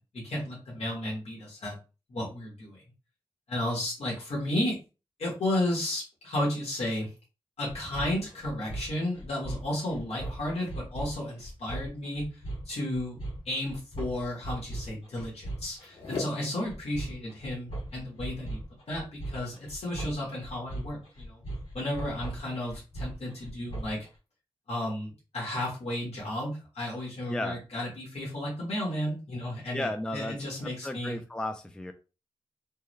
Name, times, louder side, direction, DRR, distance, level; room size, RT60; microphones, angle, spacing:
voice 1, 0.0-1.8 2.1-2.8 3.5-4.8 5.2-7.1 7.6-12.4 12.7-13.2 13.4-18.6 18.9-21.4 21.7-24.1 24.7-31.2, left 1 dB, 90° left, -5 dB, 1.3 m, -33 dB
sound 1, 7.7-24.1, right 1 dB, 65° left, 1.7 m, -39 dB
voice 2, 29.7-30.3 30.8-31.9, left 1 dB, 10° left, 7 dB, 0.3 m, -33 dB
3.5 x 2.1 x 3.1 m, 0.31 s
wide cardioid pair, 90°, 10 cm